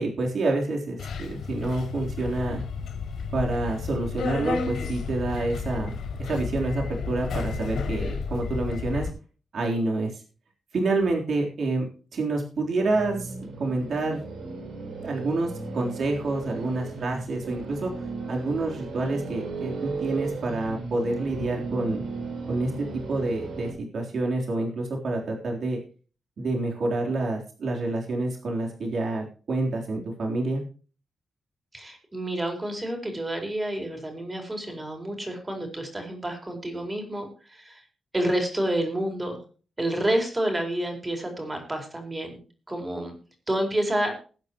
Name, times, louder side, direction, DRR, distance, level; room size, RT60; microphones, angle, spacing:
voice 1, 0.0-2.6 3.3-9.1 9.5-10.2 10.7-13.3 13.6-14.2 15.0-17.9 18.3-22.0 22.5-25.8 26.4-30.6, right 2 dB, 55° right, 0 dB, 3.6 m, -28 dB
Subway metro underground, 1.0-9.1, left 5 dB, 80° left, 5.4 m, -32 dB
sound 1, 12.8-23.7, right 3 dB, 80° right, 4.2 m, -36 dB
voice 2, 31.7-37.8 38.1-39.4 39.8-42.4 42.7-43.1 43.5-44.2, right 1 dB, 15° right, 3 dB, 4.5 m, -29 dB
20.0 x 9.6 x 3.0 m, 0.37 s
wide cardioid pair, 165°, 0 cm